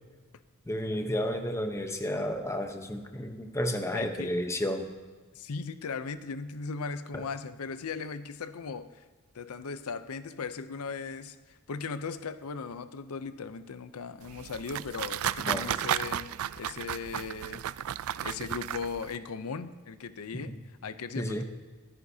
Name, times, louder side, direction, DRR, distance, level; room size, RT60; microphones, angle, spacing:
voice 1, 0.7-4.9 7.1-7.2 15.4-15.6 21.2-21.4, equal, 15° left, 5 dB, 0.9 m, -31 dB
voice 2, 3.9-4.3 5.3-9.0 9.3-16.3 16.6-17.6 18.2-21.4, left 5 dB, 90° left, 12 dB, 0.6 m, -38 dB
sound 1, 14.2-19.2, right 11 dB, 70° right, 0.3 m, -34 dB
24.0 x 9.6 x 2.8 m, 1.4 s
head